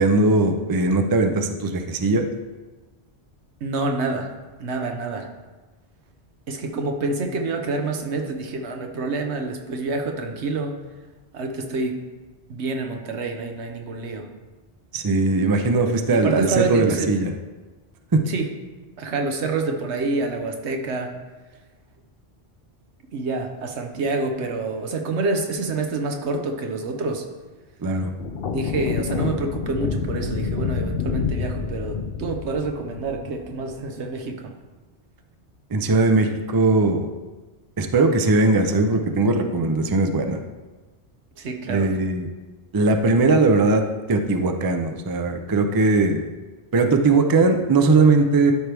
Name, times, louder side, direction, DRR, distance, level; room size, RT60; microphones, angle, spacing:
voice 1, 0.0-2.3 14.9-17.3 18.1-18.2 27.8-28.1 35.7-37.1 37.8-40.4 41.7-42.3 42.7-43.8 44.1-46.2 46.7-48.5, right 3 dB, 30° right, 6 dB, 0.4 m, -19 dB
voice 2, 3.6-4.3 4.6-5.3 6.5-10.7 11.3-12.0 12.5-14.3 16.1-17.1 18.3-18.5 19.0-21.1 23.1-27.2 28.5-34.5 41.4-41.9, right 3 dB, 85° right, 4 dB, 1.2 m, -27 dB
sound 1, 28.2-33.8, left 5 dB, 60° left, 0.8 m, -28 dB
12.0 x 4.6 x 3.4 m, 1.3 s
omnidirectional pair, 1.1 m